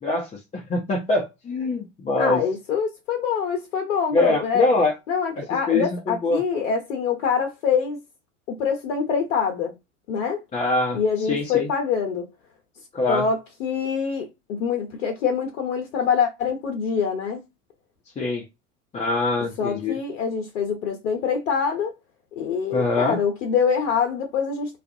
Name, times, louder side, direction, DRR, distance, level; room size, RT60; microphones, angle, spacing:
voice 1, 0.0-2.4 4.1-4.9 5.7-6.4 10.5-11.7 12.9-13.2 18.2-18.5 18.9-20.0 22.7-23.2, left 2 dB, 15° left, 0.5 m, -23 dB
voice 2, 2.2-4.7 5.1-8.0 8.5-9.7 10.1-10.4 10.9-12.3 13.1-17.4 19.6-21.9 22.4-24.8, left 6 dB, 70° left, 0.7 m, -25 dB
2.3 x 2.0 x 2.6 m
hypercardioid pair, 85°, 40 cm